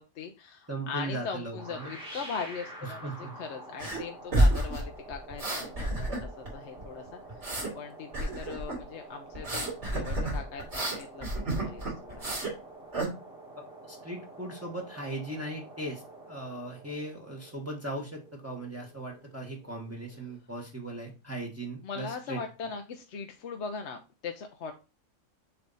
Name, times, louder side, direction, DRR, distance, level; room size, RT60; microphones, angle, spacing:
voice 1, 0.0-7.5 7.7-9.7 9.9-12.2 21.8-24.7, left 5 dB, 65° left, 5 dB, 1.0 m, -40 dB
voice 2, 0.7-1.9 2.8-3.4 13.9-22.4, right 1 dB, 10° right, -1 dB, 1.2 m, -38 dB
sound 1, 1.6-20.4, right 2 dB, 40° right, 2.6 m, -48 dB
sound 2, 3.8-4.0 4.3-6.5 6.8-7.7 8.1-8.8 9.3-12.5 12.9-13.1, right 1 dB, 65° right, 3.2 m, -29 dB
6.9 x 3.4 x 4.0 m, 0.30 s
omnidirectional pair, 1.3 m